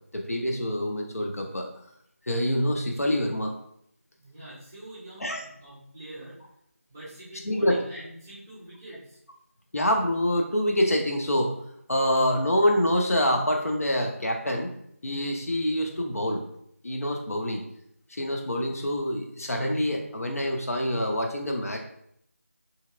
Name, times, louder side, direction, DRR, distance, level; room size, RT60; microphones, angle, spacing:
voice 1, 0.1-1.7 2.3-3.5 5.2-5.4 7.4-7.8 9.7-11.5 11.9-14.7 15.0-16.4 16.8-17.6 18.1-21.8, equal, 70° left, 2 dB, 0.6 m, -26 dB
voice 2, 4.2-6.4 6.9-9.2, right 1 dB, 10° right, -11 dB, 0.7 m, -44 dB
2.9 x 2.8 x 2.4 m, 0.71 s
figure-of-eight pair, 170°, 8 cm